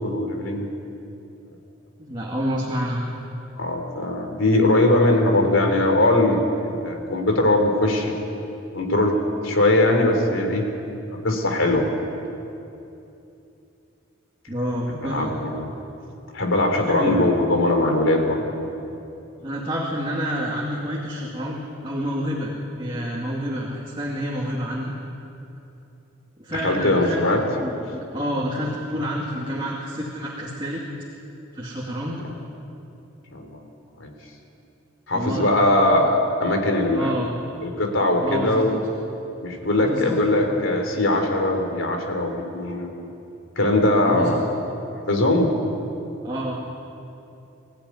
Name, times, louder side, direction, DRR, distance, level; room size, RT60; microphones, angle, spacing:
voice 1, 0.0-0.7 3.6-8.1 8.7-9.2 9.4-10.6 11.2-11.9 15.0-15.7 16.3-18.5 26.6-27.4 33.3-33.6 34.0-34.1 35.1-37.2 37.6-38.7 39.4-42.9 43.6-44.5 45.1-45.5, left 1 dB, 85° left, 3 dB, 3.4 m, -20 dB
voice 2, 2.0-3.0 14.5-15.3 16.8-17.3 19.4-24.9 26.4-30.8 31.5-32.2 35.1-35.5 36.9-37.3 38.2-38.7 39.8-40.2 44.1-44.5 46.2-46.6, equal, 25° right, -4 dB, 2.3 m, -28 dB
23.0 x 15.0 x 9.6 m, 2.8 s
head